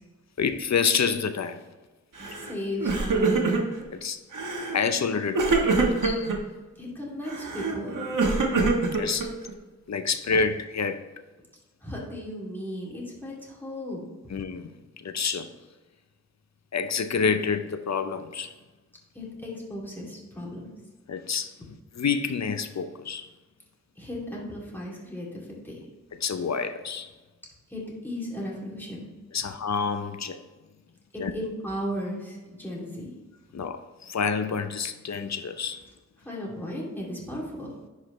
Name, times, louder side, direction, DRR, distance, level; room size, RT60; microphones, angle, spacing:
voice 1, 0.4-1.6 3.9-4.2 4.7-5.8 6.0-6.3 8.5-9.3 9.9-11.1 14.3-14.7 15.0-15.5 16.7-18.5 21.1-21.5 22.0-23.3 26.2-27.1 29.3-30.4 31.2-31.3 33.5-35.8, left 5 dB, 60° left, 0.6 m, -28 dB
voice 2, 2.2-3.7 6.8-8.0 11.8-14.0 19.1-20.7 24.0-25.9 27.7-29.1 31.1-33.1 36.2-37.7, left 1 dB, 5° left, 2.5 m, -35 dB
Crying sobbing, 2.2-2.5 2.8-3.8 4.3-4.8 5.3-6.4 7.3-9.5, right 3 dB, 85° right, 1.3 m, -25 dB
10.5 x 4.9 x 3.1 m
wide cardioid pair, 80°, 30 cm